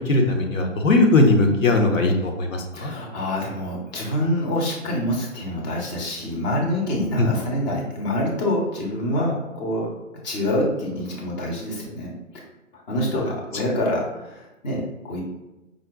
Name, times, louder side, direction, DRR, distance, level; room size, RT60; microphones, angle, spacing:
voice 1, 0.1-2.9 7.2-7.3, left 2 dB, 75° left, 3 dB, 0.8 m, -19 dB
voice 2, 2.7-9.9 10.2-12.4 12.9-15.2, left 1 dB, 35° left, -2 dB, 1.0 m, -26 dB
5.0 x 2.2 x 2.3 m, 1.0 s
figure-of-eight pair, 125°, 39 cm